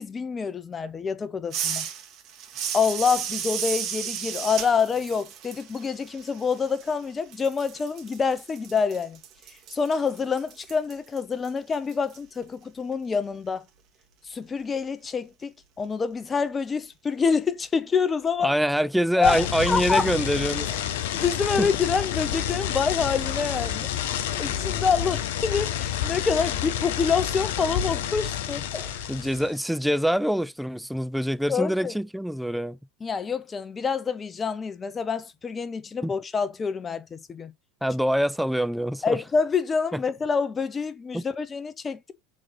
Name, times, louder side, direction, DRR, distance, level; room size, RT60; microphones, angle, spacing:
voice 1, 0.0-1.9 2.7-9.2 9.7-13.6 14.3-18.5 19.2-20.1 20.7-20.8 21.1-23.9 24.4-29.0 31.5-31.9 33.0-37.5 39.0-42.1, left 5 dB, 20° left, 1.0 m, -27 dB
sound 1, 1.5-7.0 7.3-12.2, right 8 dB, 45° right, 2.1 m, -34 dB
voice 2, 18.4-20.7 21.6-21.7 29.1-32.8 36.0-36.1 37.8-39.2 39.9-40.0 41.1-41.2, equal, ahead, 0.5 m, -25 dB
sound 2, 19.2-29.5, left 10 dB, 60° left, 1.0 m, -29 dB
6.2 x 4.1 x 5.6 m
figure-of-eight pair, 80°, 0 cm